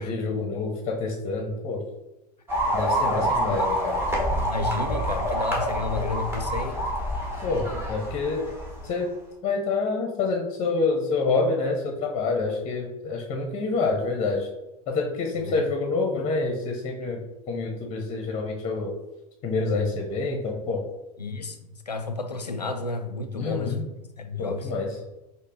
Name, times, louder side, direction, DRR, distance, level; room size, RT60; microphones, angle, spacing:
voice 1, 0.0-1.8 2.7-4.0 7.4-8.5 8.8-9.1 9.4-14.5 14.9-17.2 17.5-18.9 19.4-20.8 23.3-23.8 24.4-25.0, left 3 dB, 30° left, 2 dB, 0.7 m, -27 dB
sound 1, 2.5-8.9, equal, 10° right, 1.2 m, -27 dB
voice 2, 3.2-3.7 4.3-6.8 15.3-15.6 21.2-23.8 24.2-24.7, left 3 dB, 90° left, 8 dB, 0.4 m, -32 dB
5.3 x 2.1 x 3.8 m, 1.0 s
figure-of-eight pair, 85°, 20 cm